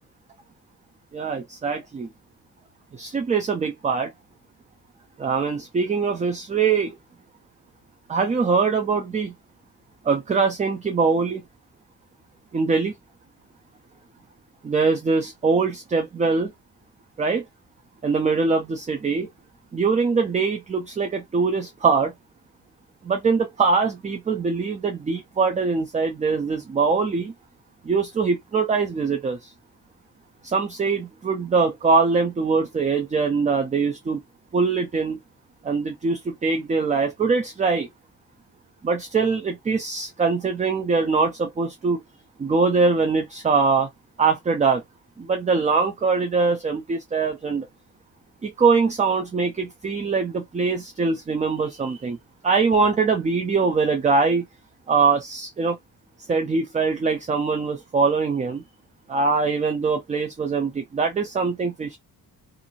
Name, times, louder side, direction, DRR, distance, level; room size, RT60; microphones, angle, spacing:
voice 1, 1.1-2.1 2.9-4.1 5.2-6.9 8.1-9.3 10.0-11.4 12.5-12.9 14.6-16.5 17.2-17.5 18.0-19.3 19.7-22.1 23.0-27.3 27.8-29.5 30.4-34.2 34.5-35.2 35.6-37.9 38.8-42.0 42.4-43.9 44.2-44.8 45.2-47.7 48.4-52.2 52.4-54.5 54.9-55.8 56.3-58.6 59.1-62.0, right 4 dB, 20° right, 0.4 m, -22 dB
2.6 x 2.5 x 2.8 m
cardioid pair, 145°, 38 cm